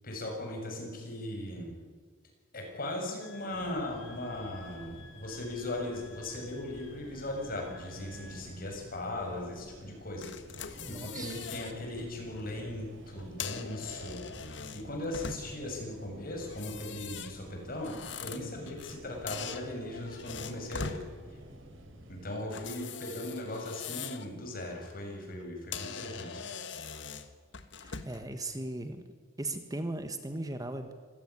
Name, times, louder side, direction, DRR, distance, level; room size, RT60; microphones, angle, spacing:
voice 1, 0.0-1.7 2.5-10.3 10.6-14.2 14.7-21.0 22.1-26.4, left 1 dB, 50° left, 1 dB, 7.1 m, -38 dB
Wind instrument woodwind instrument, 3.2-8.5, left 5 dB, 80° left, 3.5 m, -55 dB
sound 1, 3.5-22.3, right 1 dB, 90° right, 3.4 m, -51 dB
sound 2, 10.2-11.8 12.2-12.4 13.2-15.7 16.4-19.0 19.3-21.0 22.5-24.3 24.7-24.9 25.4-25.5 25.7-28.3, left 6 dB, 65° left, 1.7 m, -42 dB
voice 2, 10.8-11.4 27.8-29.1 29.4-30.9, right 2 dB, 20° right, 8 dB, 1.5 m, -38 dB
26.0 x 16.5 x 9.8 m, 1.6 s
head